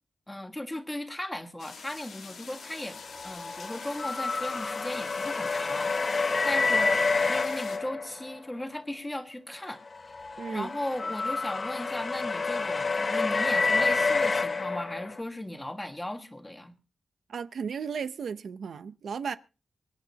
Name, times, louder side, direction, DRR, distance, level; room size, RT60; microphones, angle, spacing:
voice 1, 0.3-9.8 10.5-16.7, left 1 dB, 10° left, 1.6 m, -37 dB
sound 1, 1.6-7.8, left 5 dB, 80° left, 2.5 m, -46 dB
sound 2, 2.9-8.5 9.9-15.2, left 4 dB, 35° left, 0.6 m, -28 dB
voice 2, 10.4-10.7 17.3-19.4, right 6 dB, 80° right, 0.6 m, -34 dB
25.0 x 10.5 x 2.8 m
wide cardioid pair, 125°, 0 cm